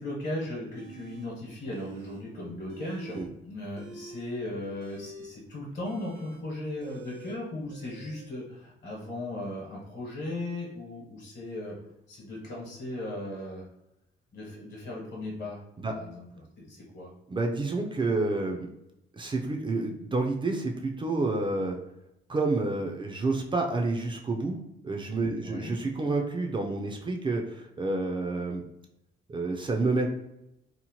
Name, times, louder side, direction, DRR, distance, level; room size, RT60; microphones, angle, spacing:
voice 1, 0.0-11.7 12.1-13.6 14.3-15.6 15.9-16.2 16.6-17.1 25.4-25.8, left 1 dB, 50° left, -5 dB, 1.1 m, -37 dB
sound 1, 0.8-1.3 1.7-2.2 2.5-3.3 3.7-8.3, right 4 dB, 85° right, 0.5 m, -47 dB
voice 2, 17.3-18.7 19.1-21.8 22.3-24.6 24.8-28.6 29.3-30.1, right 3 dB, 25° right, 2 dB, 0.4 m, -29 dB
2.8 x 2.0 x 2.9 m, 0.84 s
cardioid pair, 90°, 20 cm